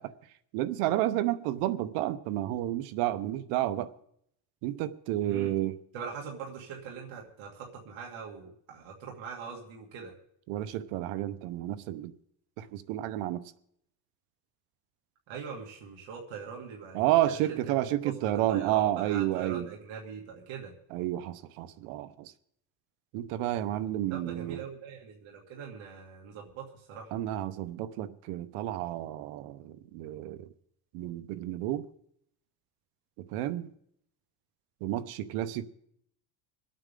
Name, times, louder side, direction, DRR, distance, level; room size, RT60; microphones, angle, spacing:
voice 1, 0.5-3.9 4.6-5.8 10.5-12.1 12.6-13.4 16.9-19.7 20.9-22.3 23.1-24.6 27.1-30.5 30.9-31.9 33.2-33.7 34.8-35.6, right 14 dB, 85° right, 1.0 m, -31 dB
voice 2, 5.9-10.1 15.3-17.4 18.0-20.7 24.1-27.1, right 6 dB, 65° right, 2.6 m, -42 dB
26.0 x 8.9 x 3.8 m
cardioid pair, 120°, 50 cm